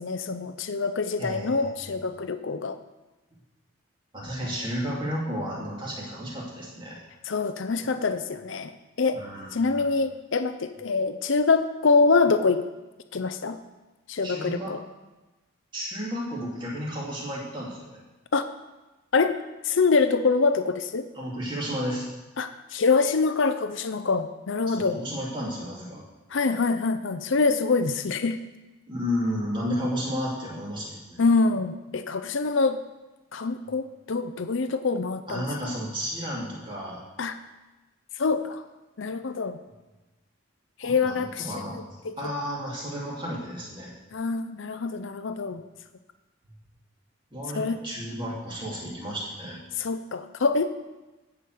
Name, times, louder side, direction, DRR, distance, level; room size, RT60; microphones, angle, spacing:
voice 1, 0.0-2.8 7.3-8.7 9.0-9.2 9.5-12.6 13.1-13.6 14.1-14.8 18.3-18.4 19.1-19.4 19.6-21.0 22.4-25.0 26.3-28.4 31.2-32.8 33.3-35.5 37.2-37.3 38.2-38.6 39.0-39.6 40.8-41.5 41.7-42.1 44.1-45.6 47.5-47.8 49.8-50.7, left 4 dB, 70° left, 9 dB, 0.6 m, -25 dB
voice 2, 1.2-1.7 4.1-7.0 7.8-8.0 9.1-9.8 14.2-14.8 15.7-18.0 21.1-22.1 24.7-26.0 28.9-31.2 35.3-37.0 40.8-41.8 42.2-43.9 47.3-49.6, equal, 25° right, -4 dB, 2.7 m, -32 dB
12.0 x 5.1 x 7.8 m, 1.1 s
head